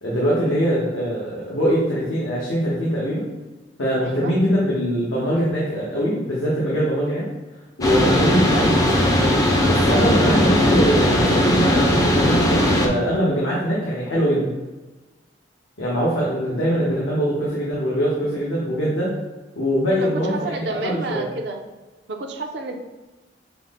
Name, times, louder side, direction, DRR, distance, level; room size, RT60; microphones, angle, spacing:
voice 1, 0.0-3.3 3.8-7.3 7.8-9.0 9.6-14.5 15.8-19.2 19.6-21.3, equal, 90° left, -6 dB, 1.0 m, -22 dB
voice 2, 4.0-4.4 8.0-8.3 16.5-16.8 19.9-21.6 22.1-22.7, right 2 dB, 60° right, 3 dB, 0.5 m, -31 dB
sound 1, 7.8-12.9, left 1 dB, 20° left, 0.4 m, -18 dB
5.8 x 2.0 x 3.5 m, 1.2 s
head